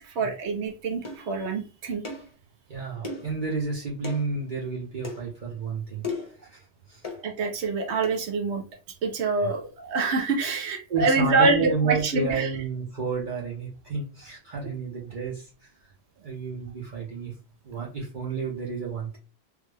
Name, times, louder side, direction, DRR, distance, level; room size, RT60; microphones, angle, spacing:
voice 1, 0.0-2.0 7.2-8.6 9.0-12.5, right 3 dB, 85° right, 2 dB, 1.0 m, -26 dB
sound 1, 1.0-1.2 2.0-2.3 3.0-3.3 4.0-4.2 5.0-5.2 6.0-6.4 7.0-7.2 8.0-8.2, left 3 dB, 30° left, 0.9 m, -35 dB
voice 2, 2.7-6.0 6.4-7.1 9.3-9.5 10.9-15.9 16.2-17.3 17.6-19.2, right 4 dB, 50° right, -4 dB, 0.8 m, -31 dB
3.3 x 2.1 x 3.3 m, 0.34 s
omnidirectional pair, 1.1 m